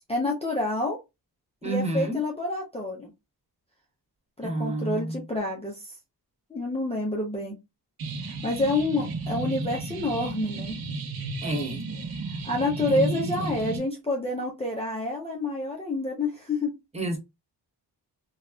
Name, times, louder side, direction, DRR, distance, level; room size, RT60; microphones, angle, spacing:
voice 1, 0.1-1.0 1.6-3.1 4.4-5.9 6.5-7.5 8.2-10.8 12.3-16.7, left 2 dB, 15° left, 0.6 m, -28 dB
voice 2, 1.6-2.2 4.4-5.2 11.4-11.8 12.9-13.6 16.9-17.2, right 1 dB, 15° right, 0.9 m, -29 dB
sound 1, 8.0-13.8, right 4 dB, 60° right, 0.7 m, -34 dB
3.9 x 2.3 x 2.2 m
wide cardioid pair, 160°, 41 cm